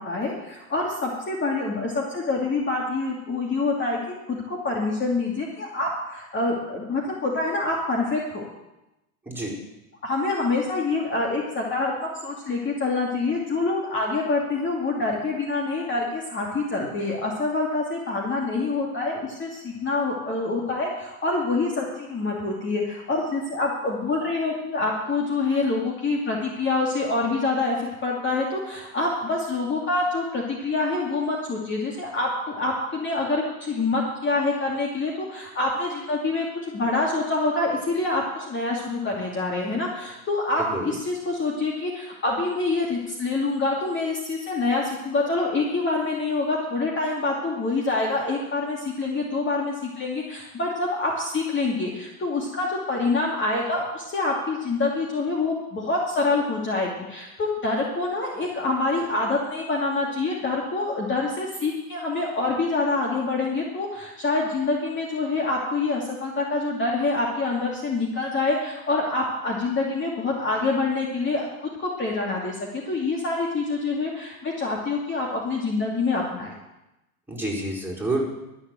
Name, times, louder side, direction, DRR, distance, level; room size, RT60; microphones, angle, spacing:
voice 1, 0.0-4.0 4.3-8.4 10.0-76.5, left 3 dB, 25° left, -2 dB, 2.6 m, -26 dB
voice 2, 40.6-41.0 77.3-78.3, right 2 dB, 5° right, -3 dB, 4.7 m, -28 dB
13.0 x 7.2 x 7.7 m, 0.95 s
hypercardioid pair, 90°, 42 cm